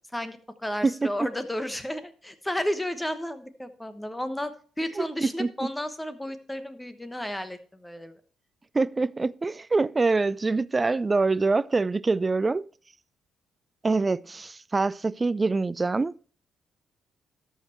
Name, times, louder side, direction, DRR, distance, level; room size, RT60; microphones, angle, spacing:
voice 1, 0.1-8.1, left 1 dB, 10° left, 1.1 m, -33 dB
voice 2, 5.0-5.7 8.7-12.7 13.8-16.1, right 3 dB, 25° right, 0.3 m, -25 dB
13.0 x 5.6 x 4.5 m
cardioid pair, 90°, 0 cm